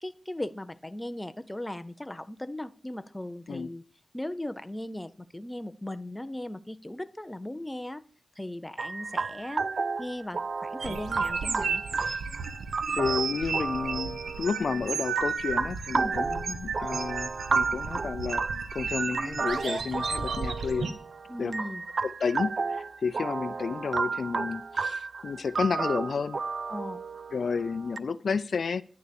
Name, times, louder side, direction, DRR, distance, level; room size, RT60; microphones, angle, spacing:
voice 1, 0.0-3.8 4.1-8.0 8.4-9.7 10.0-11.8 15.9-16.1 21.3-21.8 26.7-27.0, left 1 dB, 10° left, 0.6 m, -37 dB
sound 1, 8.8-28.0, right 4 dB, 50° right, 0.4 m, -33 dB
sound 2, 10.8-20.9, right 5 dB, 90° right, 1.3 m, -34 dB
voice 2, 12.9-18.4 18.7-20.9 21.4-21.5 22.0-26.4 27.3-28.8, left 5 dB, 55° left, 0.5 m, -31 dB
10.5 x 7.0 x 8.4 m
wide cardioid pair, 180°, 0 cm